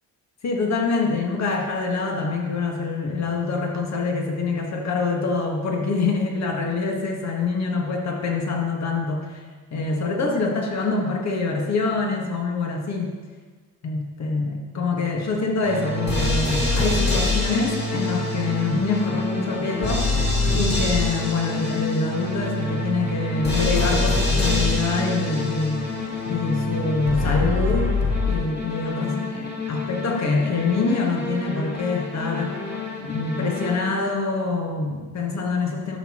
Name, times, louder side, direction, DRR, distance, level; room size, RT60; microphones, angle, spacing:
voice 1, 0.4-9.4 9.7-13.1 13.8-20.1 20.5-25.9 26.2-28.0 28.2-32.6 33.0-36.0, left 4 dB, 50° left, 1 dB, 1.7 m, -25 dB
sound 1, 15.6-34.1, left 2 dB, 30° left, 2.2 m, -25 dB
11.5 x 6.6 x 3.1 m, 1.4 s
cardioid pair, 80°, 34 cm